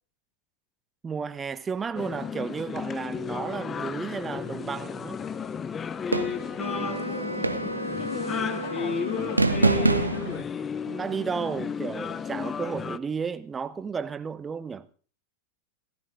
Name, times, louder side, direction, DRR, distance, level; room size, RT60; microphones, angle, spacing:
voice 1, 1.0-5.2 10.9-14.9, right 6 dB, 15° right, 0.9 m, -33 dB
sound 1, 1.9-13.0, left 6 dB, 20° left, 0.6 m, -33 dB
sound 2, 6.1-6.6 7.4-7.9 9.4-10.4, right 3 dB, 80° right, 0.8 m, -24 dB
Wind instrument woodwind instrument, 6.6-10.1, right 2 dB, 90° left, 1.2 m, -35 dB
voice 2, 8.0-10.2, left 11 dB, 45° left, 1.7 m, -37 dB
27.0 x 13.5 x 2.6 m
figure-of-eight pair, 90°, 0 cm